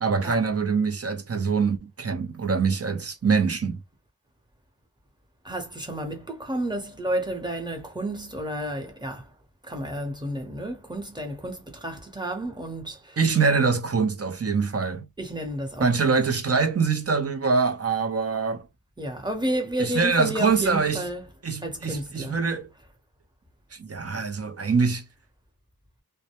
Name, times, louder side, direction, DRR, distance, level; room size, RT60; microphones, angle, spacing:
voice 1, 0.0-3.8 13.2-15.0 15.8-18.7 19.8-21.1 21.4-22.7 23.7-25.0, right 5 dB, 40° right, 0.6 m, -24 dB
voice 2, 5.4-9.3 9.6-13.2 15.2-16.2 19.0-21.3 21.6-22.4, right 1 dB, 10° right, 0.9 m, -31 dB
2.2 x 2.1 x 2.9 m
wide cardioid pair, 60°, 38 cm